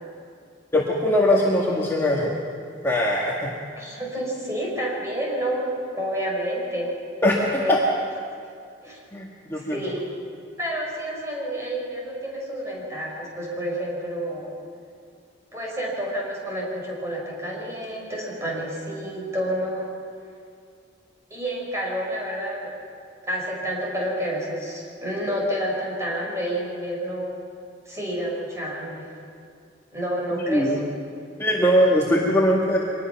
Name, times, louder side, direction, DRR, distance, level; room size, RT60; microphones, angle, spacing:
voice 1, 0.7-2.3 2.8-3.5 7.2-7.8 9.1-9.8 30.5-30.8 31.4-32.8, left 1 dB, 15° left, -4 dB, 1.7 m, -21 dB
voice 2, 3.8-6.9 7.6-8.0 8.8-9.0 9.6-10.0 10.6-14.5 15.5-19.9 21.3-22.8 23.2-27.3 27.9-29.1 29.9-30.7, equal, 15° right, -3 dB, 5.4 m, -29 dB
24.0 x 19.5 x 6.0 m, 2.3 s
head